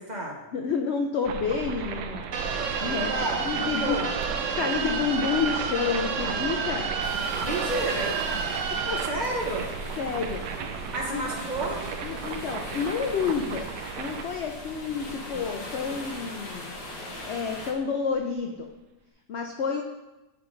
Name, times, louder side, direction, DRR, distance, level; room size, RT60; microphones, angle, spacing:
voice 1, 0.0-0.4 3.1-4.1 7.4-8.2 9.0-9.6 10.9-11.8, right 1 dB, 30° right, -2 dB, 1.0 m, -31 dB
voice 2, 0.5-2.5 2.8-3.1 3.4-3.9 4.6-6.9 8.8-9.0 10.0-10.4 11.1-11.2 12.0-13.7 14.0-16.7 17.2-18.7 19.3-19.8, left 6 dB, 80° left, 3 dB, 0.6 m, -29 dB
sound 1, 1.2-18.1, right 6 dB, 80° right, 1.2 m, -36 dB
sound 2, 2.3-9.1, right 5 dB, 60° right, 0.9 m, -30 dB
sound 3, 7.0-17.7, left 1 dB, 55° left, 1.3 m, -40 dB
10.5 x 3.8 x 3.8 m, 1.0 s
omnidirectional pair, 1.8 m